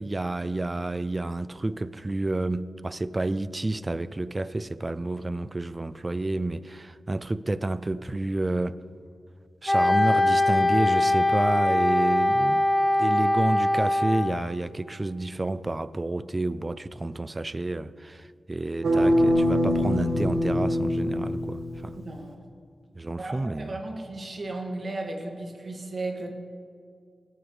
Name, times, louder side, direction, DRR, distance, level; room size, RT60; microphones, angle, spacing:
voice 1, 0.0-8.8 9.6-12.7 13.0-22.0 23.0-23.8, right 2 dB, 30° right, 0.4 m, -29 dB
Wind instrument woodwind instrument, 9.7-14.5, left 1 dB, 20° left, 1.4 m, -22 dB
sound 1, 18.8-21.9, equal, 90° right, 1.4 m, -23 dB
voice 2, 22.0-22.4 23.2-26.3, right 2 dB, 55° right, 1.9 m, -35 dB
17.0 x 13.5 x 3.3 m
cardioid pair, 65°, 0 cm